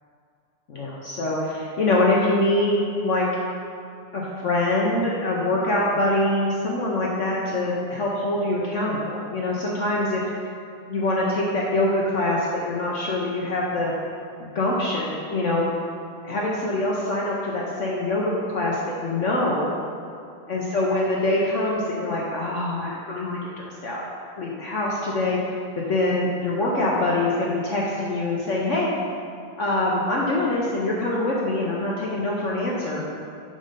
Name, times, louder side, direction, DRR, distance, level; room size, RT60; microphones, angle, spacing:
voice 1, 0.7-3.3 4.1-10.2 10.9-13.9 14.4-15.7 16.2-19.7 20.5-24.0 24.4-25.4 25.8-28.9 29.6-33.0, left 2 dB, 70° left, -4 dB, 0.7 m, -24 dB
5.5 x 5.2 x 5.1 m, 2.5 s
omnidirectional pair, 2.2 m